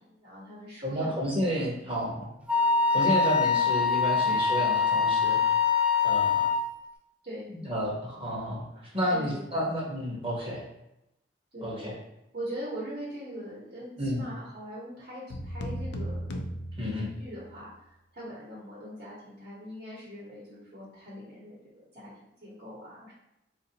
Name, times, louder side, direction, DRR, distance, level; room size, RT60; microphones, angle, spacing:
voice 1, 0.1-1.7 3.0-3.3 4.2-4.4 7.2-7.5 9.1-9.6 11.5-12.0 12.3-16.3 16.9-17.7 18.1-23.1, equal, 55° right, -7 dB, 1.1 m, -42 dB
voice 2, 0.8-2.3 2.9-5.5 6.0-6.5 7.5-8.6 8.9-10.6 11.6-11.9 14.0-14.3 16.8-17.1, equal, 30° right, -4 dB, 0.9 m, -31 dB
Wind instrument woodwind instrument, 2.5-6.7, left 5 dB, 5° right, 0.4 m, -24 dB
sound 1, 15.3-17.6, equal, 65° left, 0.4 m, -36 dB
3.9 x 2.5 x 2.8 m, 0.87 s
head